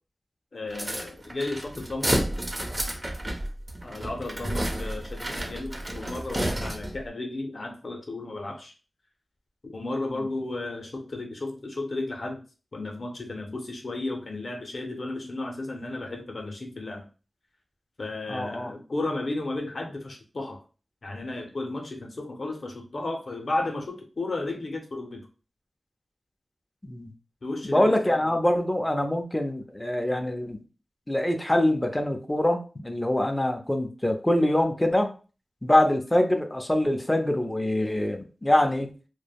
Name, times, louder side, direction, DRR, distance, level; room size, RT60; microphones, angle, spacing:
voice 1, 0.5-2.2 3.8-8.7 9.6-12.4 12.7-17.1 18.0-20.6 21.0-25.3 27.4-28.3 30.0-30.3, left 2 dB, 60° left, 0.5 m, -34 dB
sound 1, 0.7-7.0, right 1 dB, 30° right, 0.6 m, -31 dB
voice 2, 18.3-18.7 26.8-27.1 27.6-30.6 31.1-35.1 35.6-38.9, left 1 dB, 15° left, 0.5 m, -24 dB
3.2 x 2.0 x 2.3 m
wide cardioid pair, 70°, 0 cm